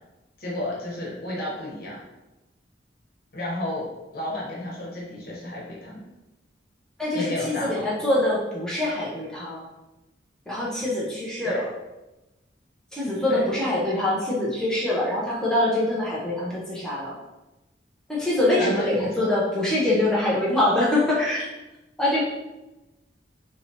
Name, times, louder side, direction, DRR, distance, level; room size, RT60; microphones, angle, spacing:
voice 1, 0.4-2.0 3.3-3.9 4.1-5.9 7.1-7.9 11.4-11.6 13.1-13.4 18.6-19.2, left 1 dB, 55° left, -5 dB, 1.1 m, -31 dB
voice 2, 7.0-9.6 10.5-11.6 13.0-17.1 18.1-21.5 22.0-22.2, left 1 dB, 5° left, -7 dB, 0.7 m, -24 dB
3.8 x 2.9 x 2.9 m, 1.0 s
head